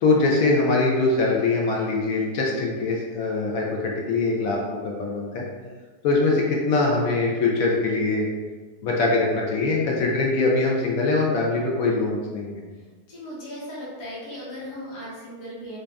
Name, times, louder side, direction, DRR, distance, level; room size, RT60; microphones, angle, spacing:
voice 1, 0.0-5.4 6.0-8.3 8.8-12.6, left 3 dB, 70° left, -2 dB, 1.0 m, -22 dB
voice 2, 13.1-15.8, equal, 90° left, -6 dB, 1.6 m, -37 dB
3.3 x 2.6 x 3.4 m, 1.4 s
omnidirectional pair, 1.7 m